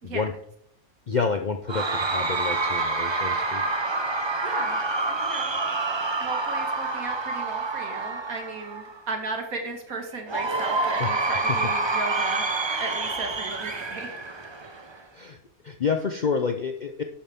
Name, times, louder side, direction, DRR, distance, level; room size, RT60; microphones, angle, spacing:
voice 1, 1.1-3.6 11.0-11.1 15.1-15.4 15.6-17.0, left 5 dB, 50° left, 5 dB, 0.5 m, -28 dB
Cheering / Crowd, 1.7-9.0 10.3-15.0, right 3 dB, 25° right, 0.6 m, -27 dB
voice 2, 4.4-4.8 5.1-5.7 6.0-12.5 12.8-14.1, right 3 dB, 75° right, 4 dB, 2.2 m, -35 dB
11.0 x 8.8 x 3.6 m, 0.68 s
omnidirectional pair, 1.5 m